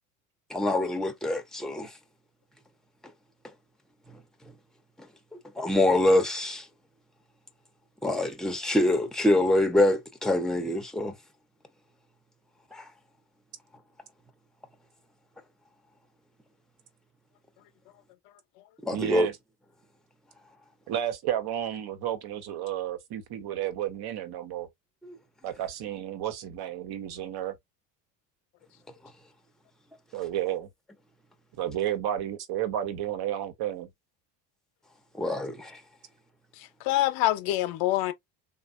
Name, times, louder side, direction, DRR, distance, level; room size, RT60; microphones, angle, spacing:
voice 1, 0.5-1.9 5.6-6.7 8.0-11.1 12.7-12.9 18.8-19.3 25.0-25.2 35.2-35.8, left 1 dB, ahead, 0.8 m, -25 dB
voice 2, 18.9-19.3 20.9-24.7 25.4-27.6 30.1-30.7 31.5-33.9, right 11 dB, 50° right, 1.1 m, -31 dB
voice 3, 36.5-38.1, left 15 dB, 65° left, 0.9 m, -26 dB
3.3 x 2.4 x 2.6 m
hypercardioid pair, 85°, 47 cm